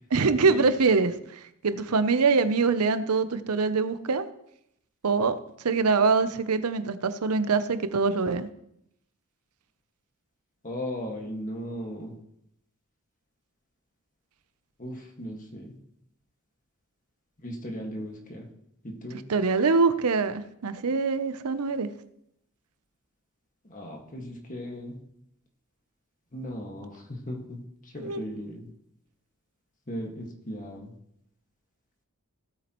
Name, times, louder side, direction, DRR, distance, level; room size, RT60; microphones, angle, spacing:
voice 1, 0.1-4.3 5.0-5.3 5.6-8.5 19.3-21.9 28.0-28.2, right 4 dB, 85° right, 12 dB, 0.7 m, -24 dB
voice 2, 10.6-12.2 14.8-15.8 17.4-18.5 18.8-19.2 23.6-25.0 26.3-28.7 29.9-30.9, equal, 35° left, 1 dB, 1.7 m, -37 dB
17.0 x 8.4 x 3.0 m, 0.77 s
head